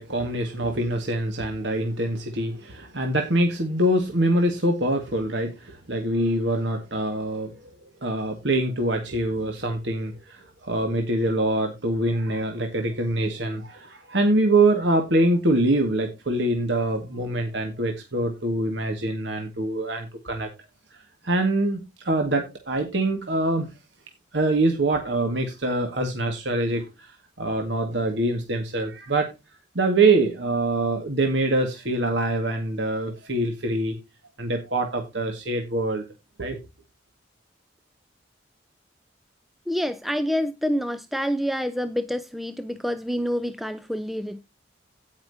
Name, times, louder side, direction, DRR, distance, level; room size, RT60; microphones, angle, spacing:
voice 1, 0.0-7.6 8.0-20.5 21.2-23.7 24.3-29.3 29.8-34.0 34.4-36.0 36.4-36.6, right 2 dB, 70° right, 1.9 m, -24 dB
voice 2, 39.7-44.4, equal, ahead, 0.5 m, -27 dB
16.5 x 5.8 x 2.7 m
head